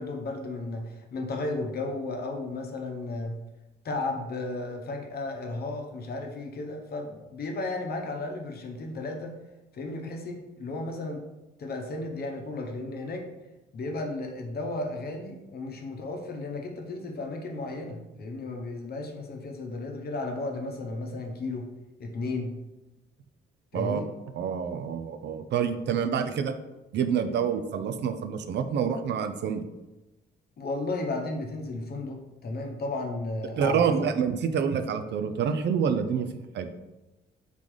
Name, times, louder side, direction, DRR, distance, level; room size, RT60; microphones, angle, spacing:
voice 1, 0.0-3.3 3.8-9.3 9.7-11.2 11.6-13.3 13.7-21.7 22.0-22.5 23.7-24.1 30.6-33.9, left 2 dB, 50° left, 3 dB, 0.8 m, -34 dB
voice 2, 24.3-26.5 26.9-29.7 33.6-36.3 36.5-36.7, right 7 dB, 60° right, 9 dB, 0.4 m, -27 dB
3.8 x 3.7 x 3.1 m, 1.0 s
cardioid pair, 90°, 20 cm